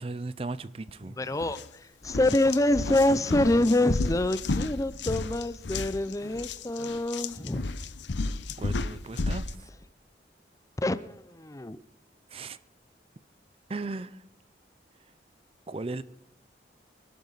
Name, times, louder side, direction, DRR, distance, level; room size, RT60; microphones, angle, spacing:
voice 1, 0.0-1.2 8.6-9.6 12.3-12.6 13.7-14.2 15.7-16.0, right 3 dB, 30° right, 0.5 m, -36 dB
voice 2, 1.0-7.7 10.8-11.8, left 1 dB, 20° left, 0.5 m, -26 dB
sound 1, 1.4-1.6 2.0-9.6, left 3 dB, 85° left, 0.8 m, -32 dB
24.0 x 12.0 x 4.0 m
head